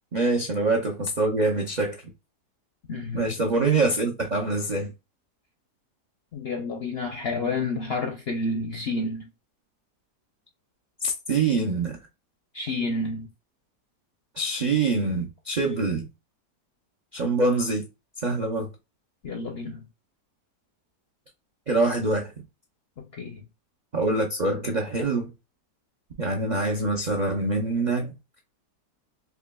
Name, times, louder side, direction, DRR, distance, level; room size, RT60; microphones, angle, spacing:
voice 1, 0.1-2.0 3.1-4.9 11.0-12.0 14.4-16.1 17.1-17.8 18.2-18.7 21.7-22.3 23.9-25.3 26.2-28.1, right 3 dB, 75° right, 0.4 m, -25 dB
voice 2, 2.9-3.3 6.3-9.2 12.5-13.3 19.2-19.9 23.0-23.4, left 3 dB, 65° left, 0.6 m, -30 dB
4.7 x 2.9 x 2.2 m
omnidirectional pair, 1.8 m